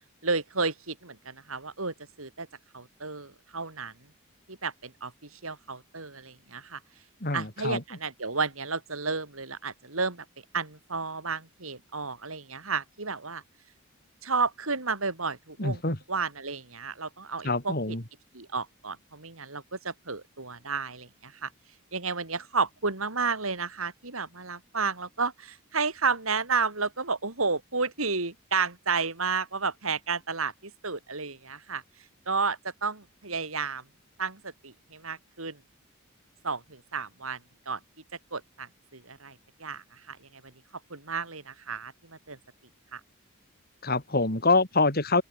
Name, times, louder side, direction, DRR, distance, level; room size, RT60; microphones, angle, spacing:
voice 1, 0.2-2.5 2.7-3.9 4.5-6.8 7.3-10.2 10.5-13.4 14.2-15.8 16.1-17.7 18.3-21.5 21.9-31.8 32.3-33.8 34.2-35.6 36.4-37.4 37.7-37.8 38.3-40.4 40.9-42.4 42.9-43.0, right 4 dB, 80° right, 4.3 m, -32 dB
voice 2, 7.2-7.8 15.6-16.0 17.4-18.0 43.8-45.2, left 3 dB, 45° left, 3.6 m, -25 dB
open air
head